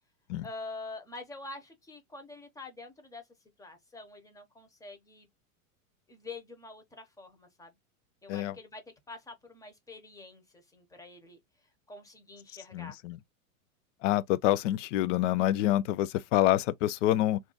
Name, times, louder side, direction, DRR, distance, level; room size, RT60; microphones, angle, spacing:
voice 1, 0.4-3.2 3.6-5.3 6.1-7.7 8.2-11.4 11.9-13.0, left 3 dB, 10° left, 0.7 m, -46 dB
voice 2, 12.7-13.2 14.0-17.4, left 14 dB, 60° left, 0.5 m, -27 dB
2.5 x 2.2 x 3.8 m
hypercardioid pair, 120°, 42 cm